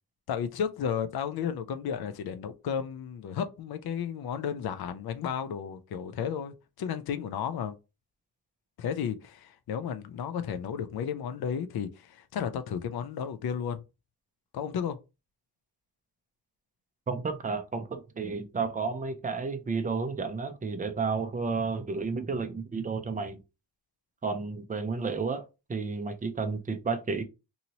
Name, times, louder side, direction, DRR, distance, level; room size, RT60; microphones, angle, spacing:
voice 1, 0.3-7.8 8.8-13.8 14.5-15.0, left 7 dB, 65° left, 0.5 m, -33 dB
voice 2, 17.1-23.4 24.2-27.2, right 4 dB, 20° right, 0.4 m, -32 dB
2.7 x 2.7 x 2.9 m
wide cardioid pair, 125°, 41 cm